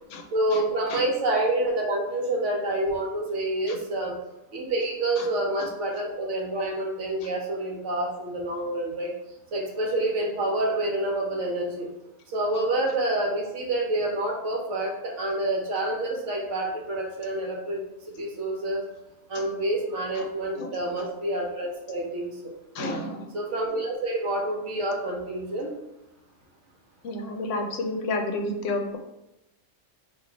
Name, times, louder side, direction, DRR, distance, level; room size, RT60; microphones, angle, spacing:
voice 1, 0.3-4.1 4.5-9.1 9.5-11.9 12.3-17.8 18.2-18.9 19.3-23.0 23.3-25.7, right 1 dB, 70° right, 0 dB, 1.1 m, -28 dB
voice 2, 22.7-23.2 27.0-29.0, left 2 dB, 70° left, 4 dB, 0.9 m, -30 dB
2.9 x 2.5 x 3.9 m, 0.90 s
omnidirectional pair, 1.4 m